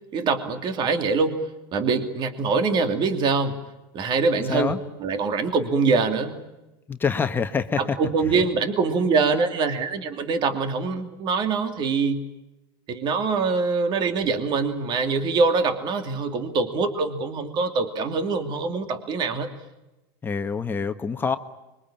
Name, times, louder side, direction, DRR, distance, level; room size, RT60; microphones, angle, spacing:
voice 1, 0.1-1.5 1.7-3.6 3.9-6.4 7.8-12.2 12.9-19.5, right 4 dB, 40° right, 7 dB, 2.8 m, -24 dB
voice 2, 6.9-8.0 20.2-21.4, left 5 dB, 15° left, 7 dB, 1.3 m, -25 dB
25.5 x 23.0 x 8.9 m, 1.0 s
supercardioid pair, 120°, 12 cm